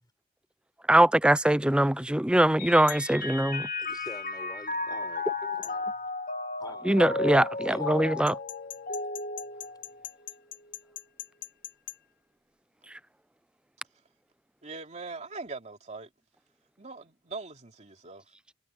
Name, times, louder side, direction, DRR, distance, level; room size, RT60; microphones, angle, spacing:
voice 1, 0.9-3.7 6.9-8.3, right 1 dB, 5° right, 0.4 m, -22 dB
Mallet percussion, 2.6-10.3, left 3 dB, 45° left, 2.2 m, -34 dB
sound 1, 2.9-3.1 5.6-5.8 8.3-12.0, left 13 dB, 65° left, 4.4 m, -41 dB
voice 2, 3.8-5.3 5.6-5.9 6.6-7.0 7.7-8.2, left 2 dB, 20° left, 7.0 m, -45 dB
voice 3, 14.6-16.1 16.8-18.2, right 3 dB, 35° right, 2.9 m, -41 dB
head